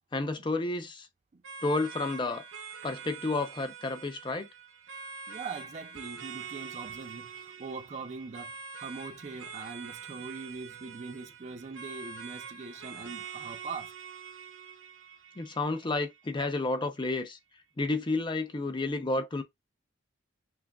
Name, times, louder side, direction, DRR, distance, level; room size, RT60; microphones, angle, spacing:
voice 1, 0.1-1.1 1.6-2.4 2.8-4.5 15.4-17.4 17.8-19.4, left 2 dB, 25° left, 0.5 m, -31 dB
sound 1, 1.4-16.4, right 6 dB, 75° right, 0.8 m, -45 dB
voice 2, 5.3-7.3 7.6-8.5 8.8-13.9, right 4 dB, 35° right, 0.4 m, -41 dB
5.8 x 2.2 x 2.3 m
head